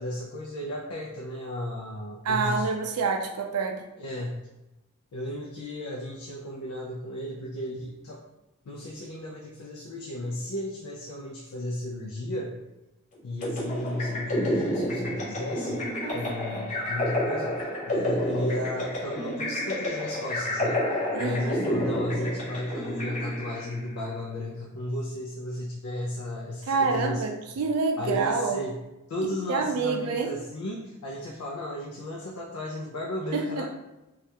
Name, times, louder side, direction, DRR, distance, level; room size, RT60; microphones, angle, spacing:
voice 1, 0.0-2.7 4.0-4.4 5.1-8.2 8.6-12.6 13.2-15.9 16.1-20.8 21.2-27.2 28.0-28.8 29.1-33.6, left 1 dB, 80° left, -1 dB, 0.4 m, -34 dB
voice 2, 2.2-3.8 16.0-16.6 21.1-21.6 26.7-28.6 29.5-30.3 33.3-33.6, right 4 dB, 85° right, 3 dB, 0.4 m, -27 dB
sound 1, 13.4-23.8, left 1 dB, 35° left, 0.7 m, -30 dB
3.2 x 2.4 x 2.8 m, 0.99 s
head